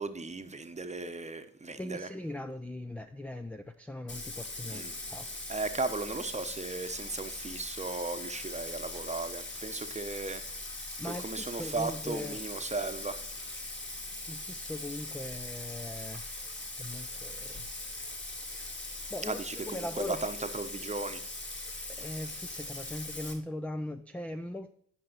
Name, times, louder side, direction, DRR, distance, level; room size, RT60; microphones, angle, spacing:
voice 1, 0.0-2.1 4.7-4.9 5.5-10.4 11.1-13.2 19.2-21.2, right 3 dB, 20° right, 0.9 m, -36 dB
voice 2, 1.7-5.4 11.0-12.4 14.3-16.3 16.8-17.7 19.1-20.3 21.9-24.7, left 1 dB, 5° left, 0.4 m, -40 dB
Bathtub (filling or washing), 4.1-23.3, left 2 dB, 30° left, 2.1 m, -41 dB
10.0 x 5.4 x 4.3 m
hypercardioid pair, 45°, 38 cm